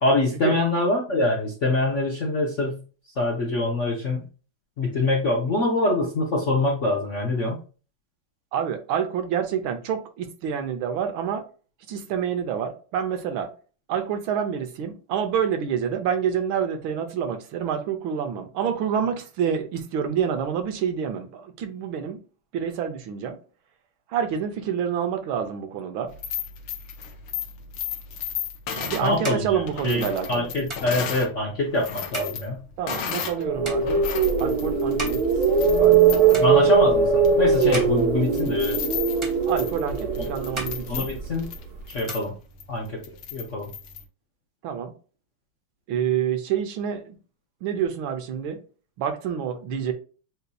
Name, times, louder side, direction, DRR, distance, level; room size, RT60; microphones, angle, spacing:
voice 1, 0.0-2.8 3.2-4.3 4.8-7.6 29.0-30.0 30.3-32.6 36.4-38.8 40.9-41.4 41.9-42.3 42.7-43.0 43.3-43.7, left 2 dB, 60° left, -2 dB, 0.8 m, -24 dB
voice 2, 8.5-11.4 11.9-13.5 13.9-22.2 22.5-23.4 24.1-26.1 28.7-30.5 32.8-34.1 34.4-35.2 35.8-36.4 39.5-41.1 44.6-44.9 45.9-47.2 47.6-48.6 49.0-49.9, right 8 dB, 75° right, 6 dB, 1.5 m, -27 dB
sound 1, 26.1-31.3 31.7-33.4 33.8-44.0, left 8 dB, 80° left, 1.6 m, -35 dB
sound 2, 28.4-36.0 36.3-37.0 37.5-38.9 39.2-40.1 40.4-41.6 41.9-43.0, right 1 dB, 15° right, 1.2 m, -40 dB
sound 3, 33.3-41.4, right 5 dB, 55° right, 1.4 m, -21 dB
7.9 x 2.7 x 2.3 m, 0.37 s
omnidirectional pair, 2.3 m